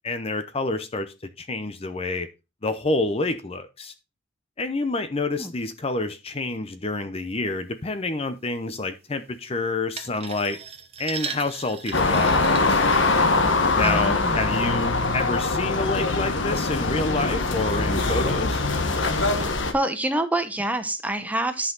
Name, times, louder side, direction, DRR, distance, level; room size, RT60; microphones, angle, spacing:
voice 1, 0.0-2.3 2.6-3.9 4.6-10.6 11.0-12.8 13.8-18.6, left 2 dB, 30° left, 0.7 m, -28 dB
sound 1, 10.0-13.6 14.1-14.4 15.0-15.1, right 6 dB, 30° right, 1.2 m, -37 dB
sound 2, 11.9-19.7, left 3 dB, 70° left, 1.3 m, -22 dB
voice 2, 13.8-14.4 19.7-21.7, right 1 dB, 10° right, 1.0 m, -26 dB
10.5 x 5.7 x 3.9 m
head